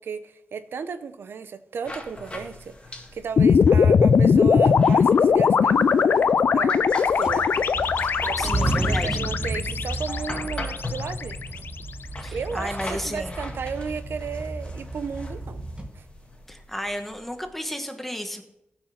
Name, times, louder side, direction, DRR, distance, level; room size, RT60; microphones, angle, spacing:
voice 1, 0.0-7.5 8.2-11.4 12.3-15.6 15.9-16.0, right 6 dB, 85° right, 0.7 m, -34 dB
sound 1, 1.8-17.5, left 2 dB, 30° left, 1.9 m, -40 dB
sound 2, 3.4-11.7, left 6 dB, 75° left, 0.4 m, -20 dB
sound 3, 4.6-5.4 5.7-6.9 7.2-15.9, right 2 dB, 25° right, 1.5 m, -32 dB
voice 2, 8.4-9.2 12.2-13.4 16.5-18.4, equal, 5° left, 1.3 m, -33 dB
15.0 x 6.2 x 5.8 m
cardioid pair, 75°, 4 cm